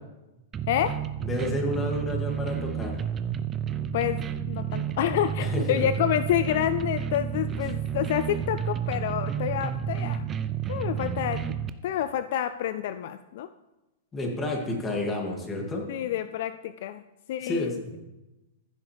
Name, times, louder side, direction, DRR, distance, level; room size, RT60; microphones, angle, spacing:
sound 1, 0.5-11.7, right 8 dB, 25° right, 0.5 m, -31 dB
voice 1, 1.3-3.0 5.4-5.9 14.1-15.9 17.4-17.7, left 1 dB, 20° left, 1 dB, 2.4 m, -30 dB
voice 2, 4.5-10.2 10.7-11.6 11.8-13.5 15.9-17.0 17.3-18.0, left 11 dB, 65° left, 12 dB, 0.4 m, -28 dB
14.5 x 7.4 x 3.4 m, 1.0 s
hypercardioid pair, 130°, 0 cm